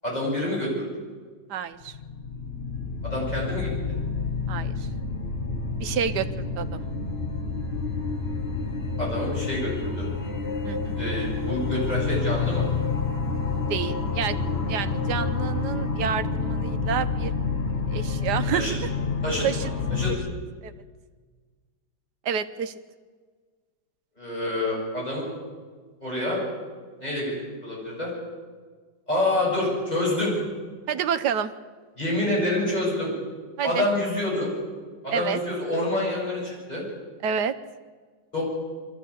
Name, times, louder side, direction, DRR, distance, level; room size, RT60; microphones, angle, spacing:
voice 1, 0.0-0.9 3.0-3.7 9.0-10.0 11.0-12.6 18.5-18.7 19.2-20.1 24.2-25.3 26.0-26.4 27.0-27.3 27.6-28.1 29.1-30.3 32.0-33.1 33.6-34.5 35.0-36.8 38.3-38.4, left 1 dB, 20° left, -4 dB, 8.2 m, -27 dB
voice 2, 1.5-1.9 4.5-4.9 5.8-6.9 10.6-11.0 13.7-14.4 14.7-17.3 17.9-18.8 19.4-19.7 20.6-20.7 22.2-22.7 30.9-31.5 33.6-33.8 35.1-35.4 37.2-37.5, right 8 dB, 65° right, 11 dB, 1.5 m, -28 dB
sound 1, 1.8-20.2, left 4 dB, 35° left, 1.6 m, -28 dB
23.0 x 14.5 x 8.6 m, 1.5 s
omnidirectional pair, 1.9 m